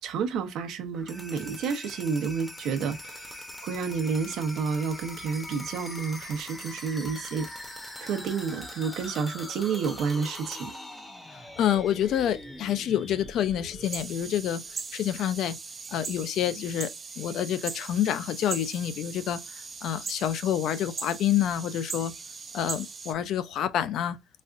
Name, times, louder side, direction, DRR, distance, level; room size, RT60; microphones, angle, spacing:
voice 1, 0.0-3.3 3.6-7.5 8.0-10.7, right 5 dB, 70° right, 0.8 m, -30 dB
sound 1, 0.9-14.8, left 1 dB, 10° left, 0.8 m, -42 dB
voice 2, 11.3-14.6 14.9-15.6 15.9-16.9 17.2-22.1 22.5-24.2, left 10 dB, 65° left, 0.4 m, -28 dB
sound 2, 13.8-23.1, right 4 dB, 30° right, 0.5 m, -39 dB
4.1 x 2.4 x 2.4 m
cardioid pair, 130°, 0 cm